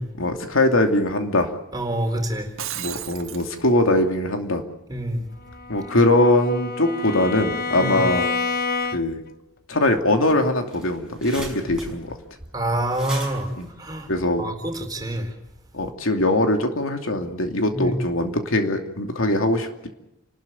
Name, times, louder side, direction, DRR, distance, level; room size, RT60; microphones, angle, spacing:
voice 1, 0.2-1.5 2.7-4.6 5.7-8.3 8.9-9.2 9.7-12.2 13.5-13.7 14.1-14.5 15.7-19.9, left 1 dB, 75° left, 4 dB, 2.7 m, -21 dB
voice 2, 1.7-2.5 4.9-5.2 7.8-8.0 12.5-13.5 13.8-14.1 14.4-15.3 17.7-18.0, right 1 dB, 20° right, 3 dB, 4.1 m, -26 dB
Shatter, 2.4-3.5, right 11 dB, 75° right, 1.6 m, -33 dB
Bowed string instrument, 5.5-9.3, left 4 dB, 45° left, 0.8 m, -28 dB
sound 1, 10.2-10.3 10.5-14.8, right 2 dB, 5° right, 6.3 m, -39 dB
29.0 x 13.0 x 9.3 m, 0.91 s
head